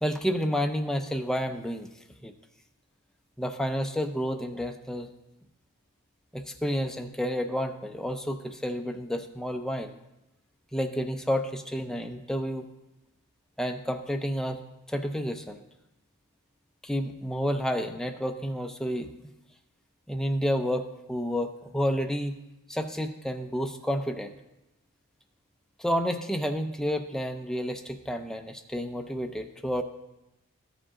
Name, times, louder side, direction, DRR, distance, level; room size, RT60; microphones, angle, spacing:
voice 1, 0.0-1.9 2.2-2.3 3.4-5.1 6.3-9.9 10.7-12.7 13.6-14.6 14.9-15.6 16.8-19.1 20.1-22.4 22.7-24.3 25.8-29.8, equal, 5° left, 5 dB, 0.4 m, -30 dB
13.0 x 5.0 x 3.7 m, 0.95 s
head